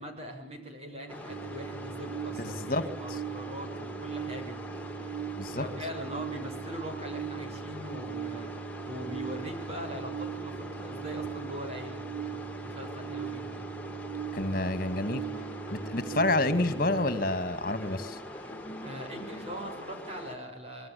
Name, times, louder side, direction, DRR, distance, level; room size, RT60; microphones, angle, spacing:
voice 1, 0.0-5.2 5.5-13.6 18.8-20.9, equal, 35° right, 7.0 m, -42 dB
sound 1, 1.1-20.4, left 1 dB, 10° left, 3.5 m, -43 dB
sound 2, 1.3-17.2, right 8 dB, 65° right, 1.5 m, -39 dB
voice 2, 2.4-2.8 3.1-3.2 5.4-5.6 14.3-15.2 15.7-18.2, left 2 dB, 55° left, 2.5 m, -29 dB
sound 3, 15.0-17.3 17.7-20.1, equal, 25° left, 3.6 m, -46 dB
26.5 x 23.5 x 8.7 m
head